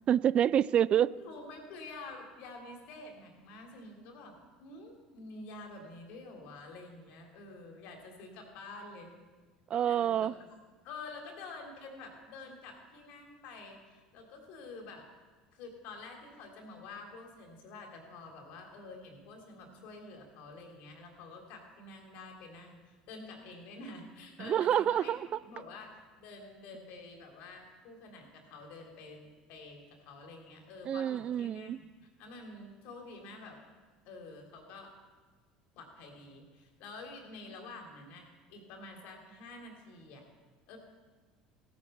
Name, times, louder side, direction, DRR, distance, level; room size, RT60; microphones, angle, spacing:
voice 1, 0.1-1.1 9.7-10.3 24.4-25.3 30.9-31.8, right 10 dB, 45° right, 19 dB, 0.4 m, -27 dB
voice 2, 1.1-9.1 9.9-10.6 10.8-15.1 15.5-25.9 26.2-31.8 32.2-33.6 34.0-34.9 35.7-40.2 40.7-40.8, left 3 dB, 65° left, 2 dB, 3.3 m, -48 dB
17.0 x 8.7 x 5.8 m, 1.4 s
hypercardioid pair, 75°, 3 cm